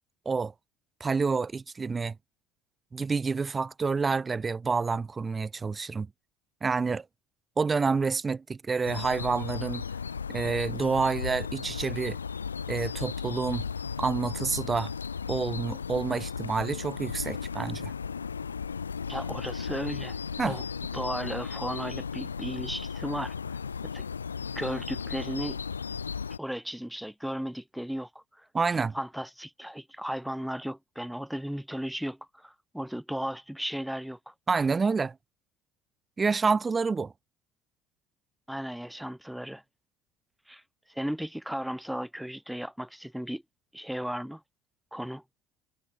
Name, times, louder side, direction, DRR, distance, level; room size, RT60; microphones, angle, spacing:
voice 1, 1.0-2.2 2.9-6.1 6.6-7.0 7.6-9.8 10.3-12.2 12.7-13.6 14.0-14.9 15.3-17.9 20.4-20.5 28.5-28.9 34.5-35.2 36.2-37.1, right 4 dB, 25° right, 2.0 m, -28 dB
sound 1, 8.9-26.4, left 6 dB, 85° left, 3.8 m, -35 dB
voice 2, 19.1-20.2 20.5-20.6 20.9-23.6 23.8-24.1 24.6-25.6 26.4-28.5 28.9-34.3 38.5-39.6 40.5-40.6 40.9-43.4 43.7-44.4 44.9-45.2, equal, ahead, 3.7 m, -35 dB
figure-of-eight pair, 60°, 0 cm